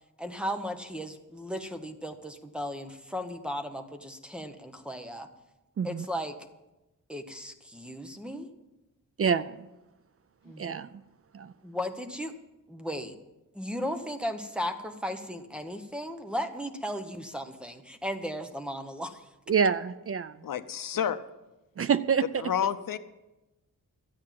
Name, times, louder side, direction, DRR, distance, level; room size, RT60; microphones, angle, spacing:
voice 1, 0.2-5.3 5.8-6.4 7.1-8.5 10.5-10.7 11.6-12.3 12.7-13.1 13.5-19.2, equal, 5° right, 7 dB, 1.0 m, -36 dB
voice 2, 9.2-9.7 10.6-10.9 11.3-11.5 19.5-20.4 21.8-22.2, right 6 dB, 45° right, 14 dB, 0.4 m, -26 dB
voice 3, 20.4-21.2 22.4-23.0, left 9 dB, 80° left, 12 dB, 0.7 m, -29 dB
13.0 x 8.7 x 7.6 m, 1.0 s
wide cardioid pair, 160°, 33 cm